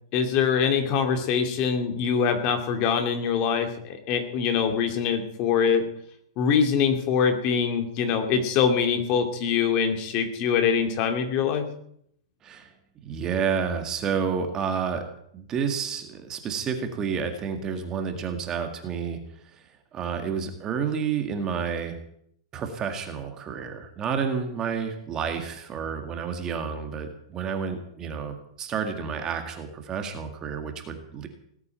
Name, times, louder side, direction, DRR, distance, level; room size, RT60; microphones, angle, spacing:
voice 1, 0.1-5.9 6.4-11.6, left 6 dB, 35° left, 6 dB, 2.5 m, -24 dB
voice 2, 13.0-15.0 15.3-19.2 19.5-19.6 19.9-22.0 22.5-31.3, right 6 dB, 20° right, 6 dB, 1.9 m, -30 dB
18.5 x 8.5 x 8.9 m, 0.68 s
hypercardioid pair, 160°, 3 cm